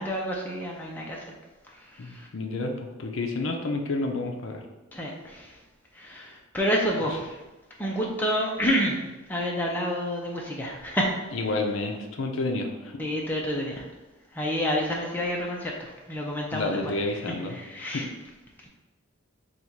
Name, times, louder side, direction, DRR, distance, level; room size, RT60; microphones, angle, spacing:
voice 1, 0.0-1.3 1.7-2.3 4.9-5.6 5.9-7.3 7.8-9.0 9.3-11.1 13.0-13.9 14.3-16.9 17.3-18.1 18.6-18.7, equal, 10° left, -2 dB, 0.5 m, -29 dB
voice 2, 2.0-4.6 11.3-13.0 16.5-18.0, left 2 dB, 65° left, 3 dB, 0.5 m, -30 dB
4.0 x 2.4 x 4.5 m, 1.1 s
head